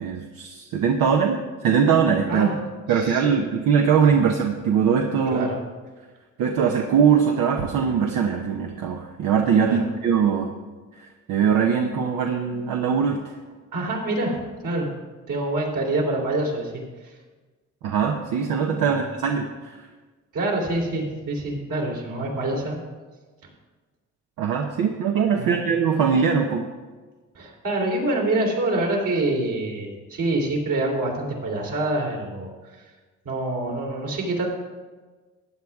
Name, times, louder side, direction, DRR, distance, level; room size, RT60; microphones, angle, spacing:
voice 1, 0.0-2.5 2.9-5.5 6.4-10.5 10.9-13.2 17.8-19.8 24.4-26.7, right 6 dB, 85° right, 2 dB, 1.0 m, -21 dB
voice 2, 2.3-2.6 2.9-3.3 5.3-5.6 9.6-9.8 13.7-14.4 14.6-14.9 15.3-17.1 18.8-19.0 20.3-22.8 25.4-25.5 27.3-32.8 33.2-34.5, right 2 dB, 65° right, -1 dB, 3.4 m, -26 dB
15.0 x 9.7 x 3.6 m, 1.3 s
cardioid pair, 85°, 33 cm